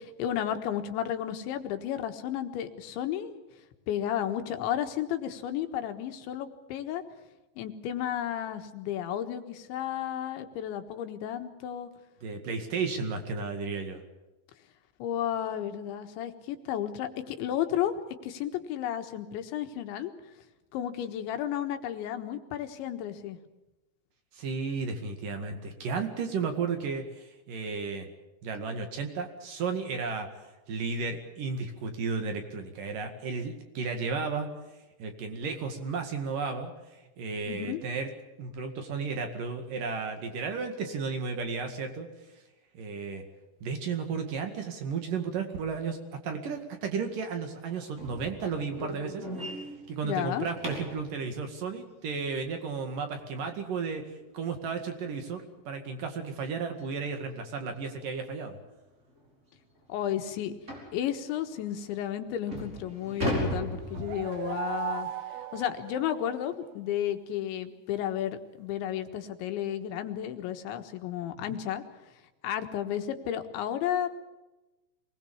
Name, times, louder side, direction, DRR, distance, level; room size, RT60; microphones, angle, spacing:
voice 1, 0.0-3.4 3.9-7.0 7.6-11.9 15.0-17.9 18.2-20.1 20.7-23.4 37.5-37.8 50.0-50.5 59.9-60.6 60.9-65.1 65.5-71.8 72.4-74.1, left 10 dB, 85° left, 7 dB, 3.8 m, -32 dB
voice 2, 12.2-14.0 24.3-28.1 28.4-30.3 30.7-34.5 35.0-36.7 37.2-38.1 38.4-42.1 42.7-43.2 43.6-46.0 46.2-49.3 49.9-54.1 54.3-58.6 71.5-71.6, right 5 dB, 55° right, 5 dB, 3.3 m, -33 dB
sound 1, 48.0-51.1 53.9-54.0 54.5-54.6 55.0-55.1 55.6-55.7 56.8-56.9 57.3-57.5 58.1-58.2 58.6-58.7 59.2-59.3 60.7-61.0 61.7-61.8 62.3-64.6, equal, 15° right, 5.5 m, -36 dB
sound 2, 63.7-66.6, right 11 dB, 75° right, 2.5 m, -37 dB
25.0 x 20.0 x 7.2 m, 1.1 s
omnidirectional pair, 5.1 m